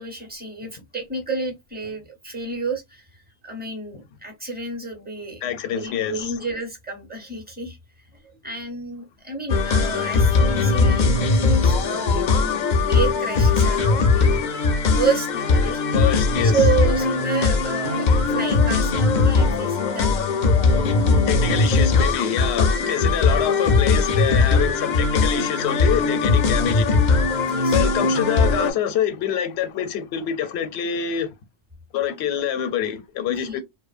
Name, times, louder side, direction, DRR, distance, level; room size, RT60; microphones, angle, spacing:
voice 1, 0.0-5.4 5.7-7.8 8.4-14.5 14.9-15.8 16.4-20.1 22.4-22.5 27.5-27.8 33.3-33.6, right 4 dB, 10° right, 0.7 m, -30 dB
voice 2, 5.4-6.2 15.6-16.6 21.3-27.0 27.7-31.3 31.9-33.6, left 9 dB, 80° left, 0.8 m, -26 dB
sound 1, 9.5-28.7, left 4 dB, 55° left, 0.5 m, -19 dB
2.7 x 2.0 x 2.4 m
omnidirectional pair, 1.1 m